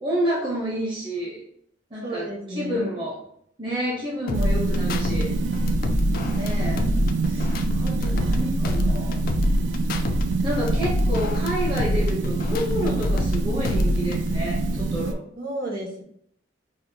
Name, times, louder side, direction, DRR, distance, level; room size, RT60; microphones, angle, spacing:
voice 1, 0.0-1.4 1.9-3.2 3.6-5.4 6.3-6.9 7.2-9.3 10.4-15.2, equal, 30° right, -4 dB, 0.6 m, -29 dB
voice 2, 2.0-2.9 15.4-16.0, right 1 dB, 55° right, -1 dB, 1.0 m, -32 dB
sound 1, 4.3-5.2 5.5-8.4 8.6-10.2 10.5-13.4 13.6-14.3, left 1 dB, 50° left, 0.3 m, -26 dB
sound 2, 4.3-15.1, right 2 dB, 85° right, 0.4 m, -25 dB
5.1 x 2.1 x 2.6 m, 0.67 s
head